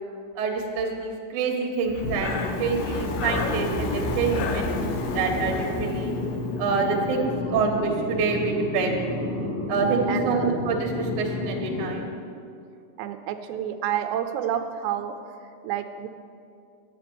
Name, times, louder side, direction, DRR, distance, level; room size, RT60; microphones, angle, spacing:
voice 1, 0.4-6.1 6.6-9.0 9.7-12.1, right 4 dB, 60° right, 0 dB, 2.1 m, -27 dB
Breathing, 1.8-6.8, left 3 dB, 80° left, 1.9 m, -32 dB
sound 1, 2.0-11.9, left 2 dB, 60° left, 3.6 m, -30 dB
voice 2, 10.1-10.6 13.0-15.1 15.6-16.1, right 10 dB, 80° right, 8 dB, 2.8 m, -29 dB
9.8 x 9.2 x 6.9 m, 2.5 s
omnidirectional pair, 5.1 m